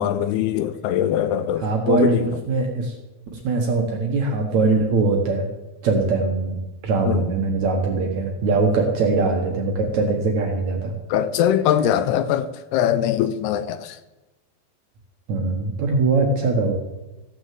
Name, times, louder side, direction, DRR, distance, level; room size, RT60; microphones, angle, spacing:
voice 1, 0.0-2.3 7.0-7.3 11.1-14.0, left 10 dB, 80° left, 2.5 m, -22 dB
voice 2, 1.6-2.9 3.3-5.5 5.8-6.6 6.8-11.0 15.3-16.7, right 3 dB, 65° right, 1.9 m, -21 dB
16.0 x 6.1 x 7.6 m
omnidirectional pair, 5.0 m